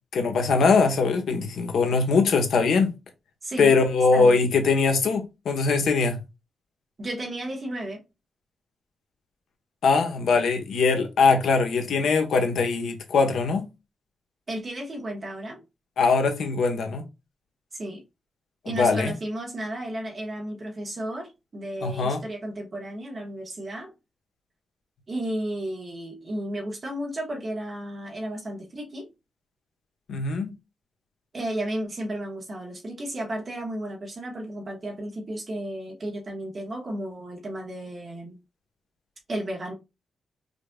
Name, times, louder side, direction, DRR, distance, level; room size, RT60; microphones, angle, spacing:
voice 1, 0.1-2.9 3.6-6.2 9.8-13.7 16.0-17.0 18.6-19.1 21.8-22.2 30.1-30.5, left 4 dB, 80° left, 0.9 m, -22 dB
voice 2, 3.4-3.8 4.1-4.4 7.0-8.0 14.5-15.6 17.7-18.0 18.6-23.9 25.1-29.1 31.3-38.4 39.3-39.7, right 1 dB, 30° right, 1.1 m, -33 dB
5.1 x 2.5 x 2.2 m
wide cardioid pair, 165°, 0 cm